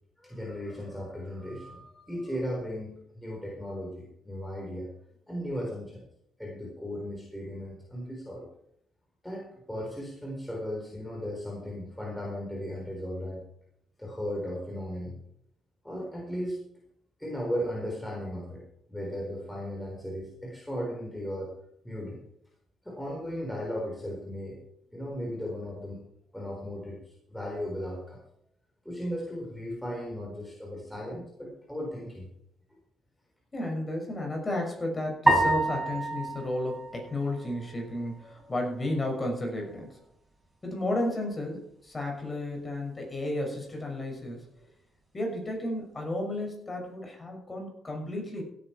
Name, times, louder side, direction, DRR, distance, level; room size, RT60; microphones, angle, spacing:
voice 1, 0.2-4.9 5.3-6.0 6.4-8.5 9.2-13.4 14.0-15.2 15.8-16.6 17.2-18.6 18.9-21.5 21.8-22.2 22.8-24.6 24.9-28.2 28.8-32.3, equal, 5° left, -2 dB, 4.0 m, -36 dB
voice 2, 33.5-40.0 40.6-44.7 45.1-48.4, left 1 dB, 25° left, 1 dB, 6.0 m, -33 dB
sound 1, 35.3-37.7, right 2 dB, 15° right, 6.0 m, -27 dB
16.5 x 9.7 x 4.5 m, 0.73 s
cardioid pair, 90°, 0 cm